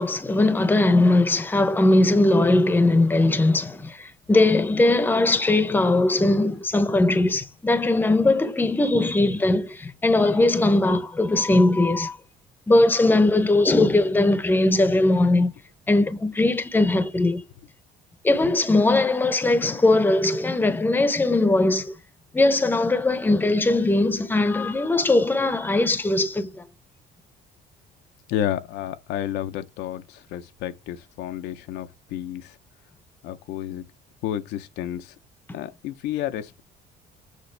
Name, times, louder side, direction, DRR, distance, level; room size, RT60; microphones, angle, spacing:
voice 1, 0.0-12.2 12.7-15.5 15.9-17.4 18.2-21.9 22.3-26.6, left 2 dB, 10° left, 0.8 m, -20 dB
voice 2, 28.3-32.6 33.2-33.9 34.2-35.1 35.5-36.6, left 11 dB, 85° left, 0.7 m, -31 dB
6.5 x 5.1 x 3.3 m
cardioid pair, 110°, 17 cm